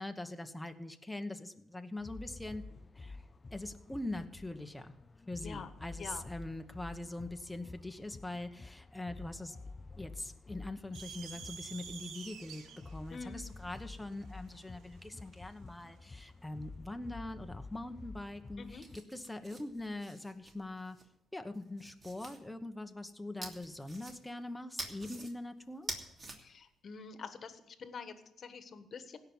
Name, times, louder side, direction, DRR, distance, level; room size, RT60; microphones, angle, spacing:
voice 1, 0.0-2.6 2.9-5.0 5.3-9.6 10.0-21.0 21.3-25.9, left 2 dB, 5° left, 6 dB, 1.1 m, -43 dB
sound 1, 2.0-19.0, left 3 dB, 30° left, 0.5 m, -50 dB
sound 2, 10.9-15.5, right 7 dB, 80° right, 1.4 m, -49 dB
voice 2, 13.1-13.5 18.6-18.8 26.4-29.2, left 5 dB, 50° left, 10 dB, 1.4 m, -46 dB
sound 3, 18.7-21.0 21.5-22.4 23.4-24.4 24.8-25.3 25.7-26.4, right 2 dB, 35° right, 2.9 m, -46 dB
17.0 x 5.9 x 9.5 m, 0.86 s
cardioid pair, 90°, 0 cm